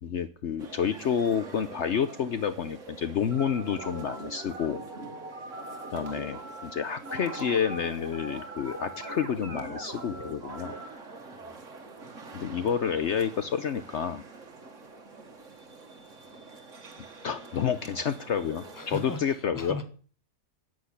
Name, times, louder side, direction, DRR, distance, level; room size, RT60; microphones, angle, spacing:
voice 1, 0.0-4.8 5.9-10.7 12.3-14.2 17.2-19.7, left 7 dB, 60° left, 1.0 m, -29 dB
sound 1, 0.6-19.2, right 3 dB, 65° right, 2.1 m, -47 dB
sound 2, 3.3-10.9, right 2 dB, 45° right, 2.5 m, -41 dB
voice 2, 16.1-16.5 18.7-19.8, left 3 dB, 15° left, 1.4 m, -39 dB
10.0 x 9.4 x 8.2 m
omnidirectional pair, 1.4 m